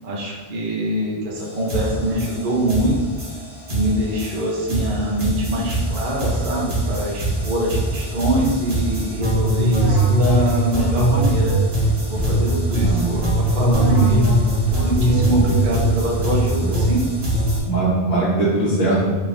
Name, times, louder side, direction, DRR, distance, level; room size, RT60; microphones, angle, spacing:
voice 1, 0.0-3.0 3.7-11.5 12.1-13.0 13.3-14.4 14.8-17.0, right 1 dB, 60° right, -3 dB, 0.8 m, -24 dB
sound 1, 1.4-1.5 1.7-17.6, right 1 dB, 75° right, 1.3 m, -21 dB
Run, 11.7-16.6, right 1 dB, 10° right, 0.5 m, -30 dB
voice 2, 12.8-13.2 16.7-16.8 17.6-19.1, right 2 dB, 55° left, -8 dB, 1.2 m, -20 dB
3.3 x 2.5 x 3.4 m, 1.4 s
omnidirectional pair, 1.1 m